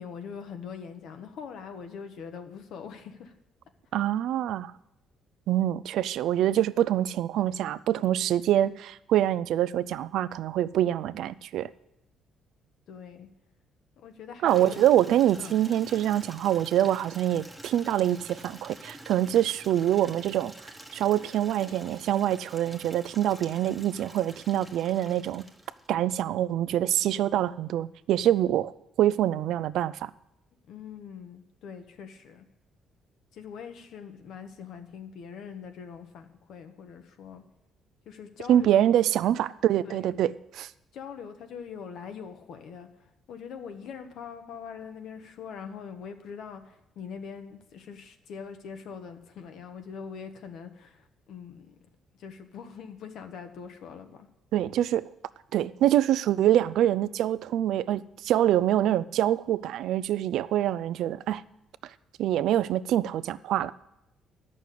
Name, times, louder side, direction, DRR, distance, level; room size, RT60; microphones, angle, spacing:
voice 1, 0.0-3.3 12.9-13.3 14.0-14.9 15.4-15.6 30.7-32.5 33.3-37.4 38.1-38.9 39.9-40.0 40.9-51.8 52.2-54.3, left 6 dB, 70° left, 7 dB, 1.2 m, -42 dB
voice 2, 3.9-4.7 5.5-11.7 14.4-20.5 20.9-25.4 25.9-28.7 29.0-30.1 38.5-40.7 54.5-55.1 55.5-61.4 62.2-63.7, right 12 dB, 75° right, 16 dB, 0.4 m, -25 dB
Water tap faucet / Liquid, 14.5-26.0, right 1 dB, ahead, 1.1 m, -48 dB
11.5 x 6.3 x 8.4 m, 0.86 s
cardioid pair, 100°, 0 cm